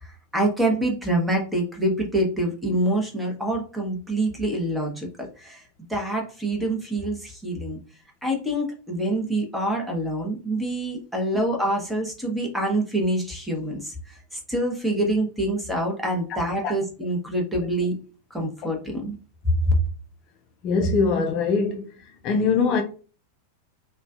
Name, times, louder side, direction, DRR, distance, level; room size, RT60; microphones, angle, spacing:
voice 1, 0.0-5.1 5.4-5.6 5.9-7.8 8.2-18.0 18.3-19.1 19.4-19.8, right 1 dB, 5° right, 0.8 m, -26 dB
voice 2, 20.6-21.9 22.2-22.8, left 4 dB, 35° left, 0.3 m, -22 dB
2.4 x 2.1 x 2.4 m
figure-of-eight pair, 90°, 0 cm